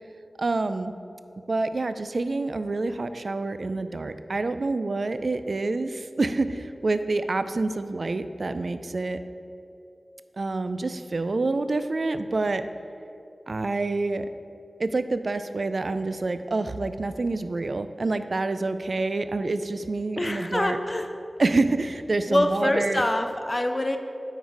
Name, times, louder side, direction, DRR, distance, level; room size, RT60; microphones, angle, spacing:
voice 1, 0.4-0.9 1.5-9.2 10.4-12.6 13.5-14.3 14.8-20.8 21.4-23.0, right 3 dB, 60° right, 11 dB, 0.3 m, -27 dB
voice 2, 20.2-21.1 22.3-24.0, left 1 dB, 25° left, 6 dB, 0.4 m, -25 dB
9.4 x 3.9 x 4.7 m, 2.7 s
wide cardioid pair, 85°, 0 cm